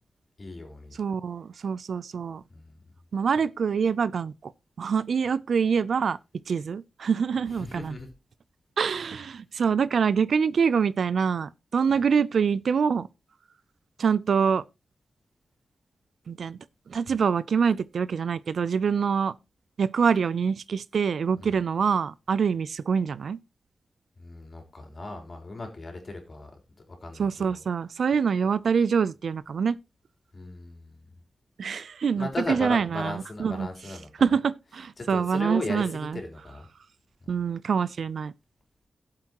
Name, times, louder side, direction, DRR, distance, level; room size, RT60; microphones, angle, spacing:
voice 1, 0.4-1.0 2.5-2.8 7.5-8.1 21.4-21.6 24.2-26.5 26.8-27.6 30.3-31.1 32.2-34.1 35.0-36.7 37.2-37.3, left 2 dB, 40° left, 3.6 m, -37 dB
voice 2, 1.0-2.4 3.1-4.5 4.8-6.2 6.5-8.0 8.8-13.1 14.0-14.6 16.3-16.6 16.9-19.3 19.8-23.4 27.2-29.8 31.6-33.7 34.2-36.2 37.3-38.3, right 6 dB, 75° right, 0.5 m, -25 dB
17.0 x 7.6 x 3.0 m
wide cardioid pair, 115°, 0 cm